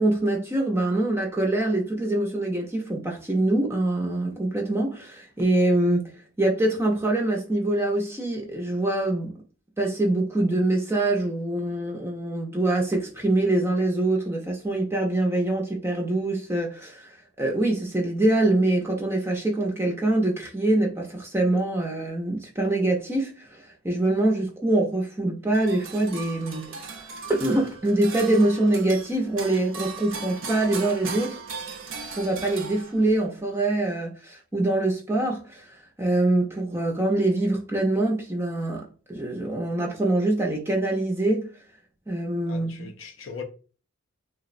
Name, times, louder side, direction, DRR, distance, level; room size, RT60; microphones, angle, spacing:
voice 1, 0.0-9.3 9.8-26.7 27.0-27.1 27.4-31.4 32.2-35.7 36.0-41.5 42.1-42.9, right 2 dB, 10° right, 0.4 m, -24 dB
sound 1, 25.5-33.2, right 4 dB, 65° right, 0.5 m, -37 dB
voice 2, 42.5-43.4, left 5 dB, 65° left, 0.5 m, -39 dB
3.4 x 2.0 x 2.4 m
head